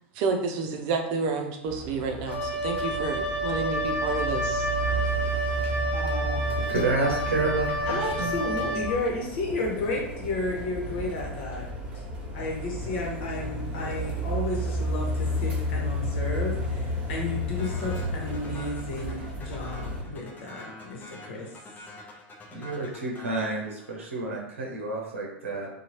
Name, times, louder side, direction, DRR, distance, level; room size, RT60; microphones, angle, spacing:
voice 1, 0.2-4.7, right 4 dB, 55° right, 4 dB, 0.6 m, -30 dB
sound 1, 1.7-20.0, equal, 20° right, 1.2 m, -32 dB
Wind instrument woodwind instrument, 2.3-9.0, equal, 85° left, 0.4 m, -30 dB
voice 2, 5.9-6.4 7.9-11.6 12.3-21.5, left 2 dB, 65° left, -1 dB, 1.0 m, -32 dB
voice 3, 6.7-8.3 22.5-25.7, right 2 dB, 85° right, -1 dB, 0.7 m, -29 dB
sound 2, 17.6-24.3, left 2 dB, 25° left, 0.7 m, -46 dB
2.8 x 2.3 x 3.0 m, 0.80 s
hypercardioid pair, 90°, 7 cm